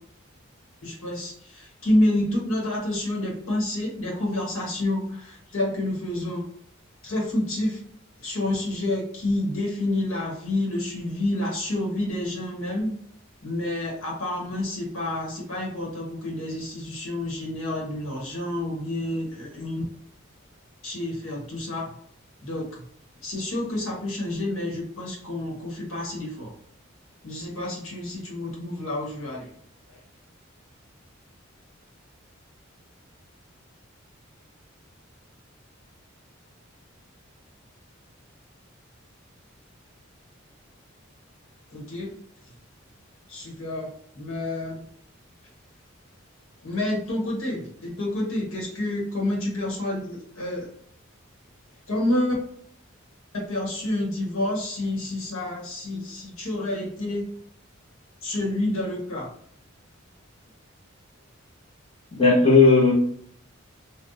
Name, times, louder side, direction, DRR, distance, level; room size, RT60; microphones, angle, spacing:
voice 1, 0.8-6.4 7.0-7.8 8.2-12.9 13.4-19.8 20.8-22.0 22.4-22.8 23.2-26.5 27.2-29.5 29.9-30.0 41.7-42.1 43.3-44.9 46.6-50.7 51.9-52.3 53.3-57.2 58.2-59.3, left 1 dB, 85° left, -3 dB, 1.3 m, -28 dB
voice 2, 62.1-62.9, left 3 dB, 25° left, -4 dB, 1.1 m, -16 dB
3.8 x 2.4 x 2.6 m, 0.64 s
head